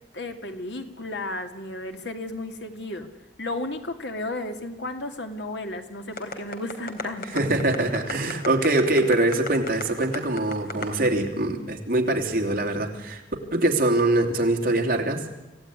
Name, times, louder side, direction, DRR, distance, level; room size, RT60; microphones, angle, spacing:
voice 1, 0.1-3.1 3.4-7.5, left 2 dB, 90° left, 6 dB, 2.5 m, -33 dB
sound 1, 6.2-11.1, left 3 dB, 55° left, 3.2 m, -33 dB
voice 2, 7.2-13.2 13.5-15.2, right 2 dB, 50° right, 3 dB, 3.1 m, -23 dB
26.5 x 16.0 x 9.8 m, 1.0 s
head